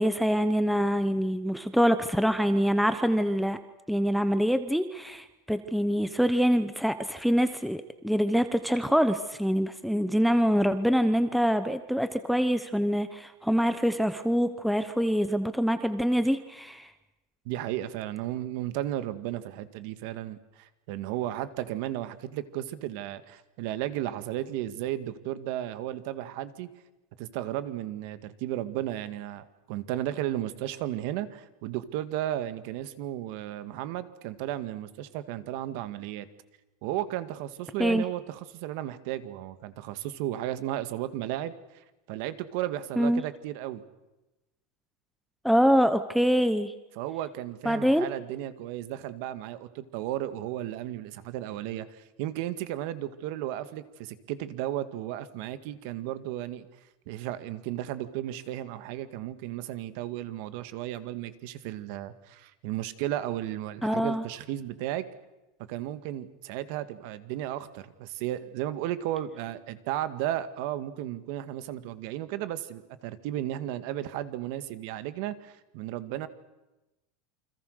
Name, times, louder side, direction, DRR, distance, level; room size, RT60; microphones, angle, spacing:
voice 1, 0.0-3.6 3.9-16.9 37.8-38.0 43.0-43.2 45.4-46.7 47.6-48.1 63.8-64.2, equal, ahead, 10 dB, 0.9 m, -25 dB
voice 2, 17.5-26.7 27.2-36.3 36.8-43.8 47.0-56.7 57.1-65.1 65.7-76.3, right 13 dB, 50° right, 12 dB, 1.8 m, -34 dB
28.5 x 26.0 x 6.6 m, 1.0 s
supercardioid pair, 175°, 0 cm